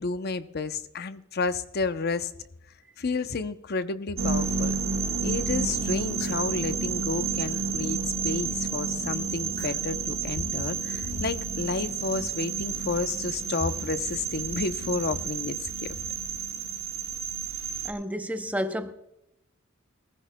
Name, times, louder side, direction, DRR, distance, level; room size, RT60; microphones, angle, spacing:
voice 1, 0.0-2.3 3.0-4.8 5.2-15.9, left 4 dB, 50° left, 0.7 m, -31 dB
sound 1, 4.2-17.9, right 5 dB, 80° right, 1.5 m, -30 dB
sound 2, 5.8-6.5 7.1-7.7 9.3-10.0 10.6-11.1, left 2 dB, 20° left, 3.3 m, -51 dB
voice 2, 17.8-18.9, equal, 5° right, 0.7 m, -30 dB
18.5 x 15.5 x 2.2 m
head